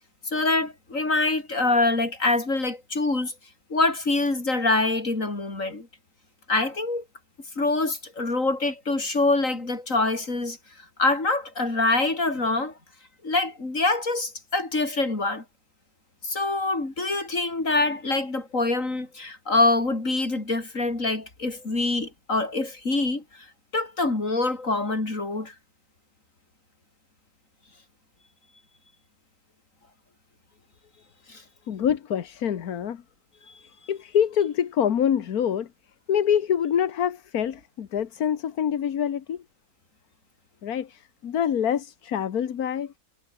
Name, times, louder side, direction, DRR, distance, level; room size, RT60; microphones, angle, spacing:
voice 1, 0.2-3.3 3.7-5.9 6.5-7.0 7.6-10.6 11.0-12.7 13.2-15.4 16.2-23.5 23.7-25.5 31.3-31.4, left 2 dB, 55° left, 4.9 m, -25 dB
voice 2, 31.7-33.0 33.4-35.7 36.1-39.4 40.6-42.9, left 9 dB, 75° left, 1.7 m, -26 dB
omnidirectional pair, 1.6 m